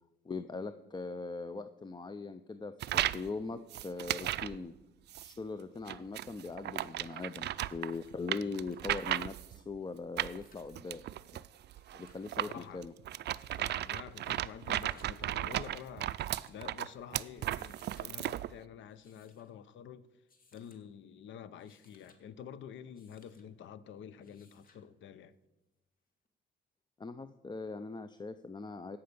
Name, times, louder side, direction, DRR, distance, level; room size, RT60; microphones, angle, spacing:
voice 1, 0.2-4.7 5.2-11.0 11.3-11.4 11.9-12.9 27.0-29.0, left 4 dB, 20° left, 0.5 m, -41 dB
sound 1, 2.8-3.3 3.7-4.6 5.1-5.3 5.9-9.6 10.2-18.5, right 13 dB, 60° right, 0.4 m, -35 dB
sound 2, 8.1-8.2 8.5-9.2 10.1-10.8 11.6-12.3 13.3-13.8 14.7-15.4 16.2-16.7 17.5-18.1 18.9-19.5 20.3-20.8 21.4-22.2 22.9-23.5 24.2-24.8 26.2-26.3, left 4 dB, 45° left, 1.7 m, -67 dB
voice 2, 12.4-12.8 13.5-20.1 20.5-25.4, left 8 dB, 70° left, 0.7 m, -49 dB
16.0 x 5.8 x 6.8 m
cardioid pair, 90°, 20 cm